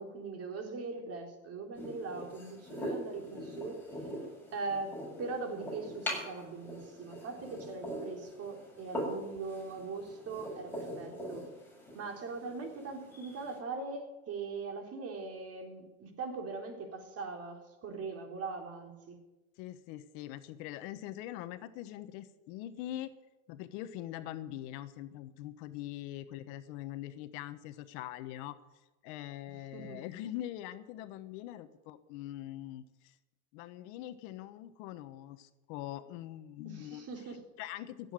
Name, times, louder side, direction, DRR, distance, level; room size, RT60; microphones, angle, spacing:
voice 1, 0.0-3.8 4.5-11.4 11.9-19.2 29.7-30.0 36.6-37.4, right 4 dB, 40° right, 3 dB, 3.8 m, -41 dB
sound 1, 1.7-13.6, equal, 5° left, 7.2 m, -42 dB
voice 2, 19.6-23.1 23.5-28.6 29.0-33.2 33.5-37.1 37.6-38.1, left 13 dB, 60° left, 12 dB, 1.2 m, -43 dB
16.0 x 8.2 x 9.3 m, 1.1 s
supercardioid pair, 110°, 39 cm